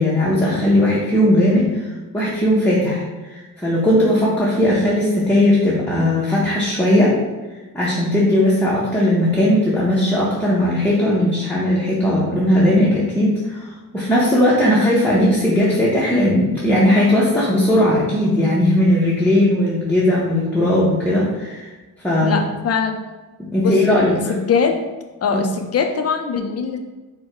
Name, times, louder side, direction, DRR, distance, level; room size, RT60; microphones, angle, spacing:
voice 1, 0.0-1.8 2.1-3.0 3.3-7.1 7.7-21.7 22.0-22.4 23.5-24.2, left 1 dB, 5° left, -7 dB, 0.7 m, -17 dB
voice 2, 22.2-23.0 23.6-24.8 25.2-26.8, left 5 dB, 40° left, 5 dB, 0.5 m, -22 dB
4.6 x 2.2 x 4.5 m, 1.2 s
wide cardioid pair, 150°, 37 cm